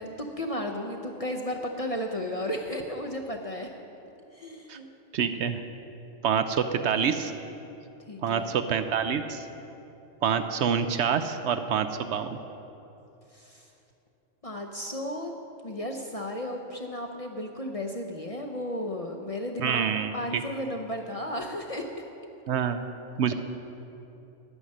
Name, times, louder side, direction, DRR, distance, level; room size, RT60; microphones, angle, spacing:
voice 1, 0.0-3.7 4.3-4.9 8.1-8.5 13.3-13.7 14.4-15.3 15.6-21.8, left 1 dB, 35° left, 2 dB, 0.6 m, -34 dB
voice 2, 5.1-5.6 6.2-7.3 8.2-9.5 10.2-12.3 19.6-20.4 22.5-22.8 23.2-23.3, right 7 dB, 70° right, 9 dB, 0.8 m, -26 dB
10.0 x 9.8 x 6.4 m, 2.9 s
omnidirectional pair, 1.3 m